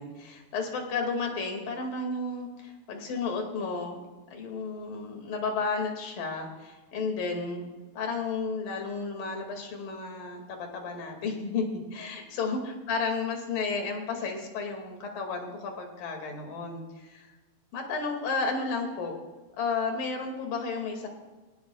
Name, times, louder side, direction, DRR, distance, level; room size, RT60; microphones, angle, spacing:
voice 1, 0.0-4.0 4.3-7.7 7.9-17.3 17.7-19.2 19.6-21.1, left 4 dB, 55° left, 2 dB, 3.7 m, -32 dB
24.0 x 18.0 x 2.4 m, 1.3 s
omnidirectional pair, 5.2 m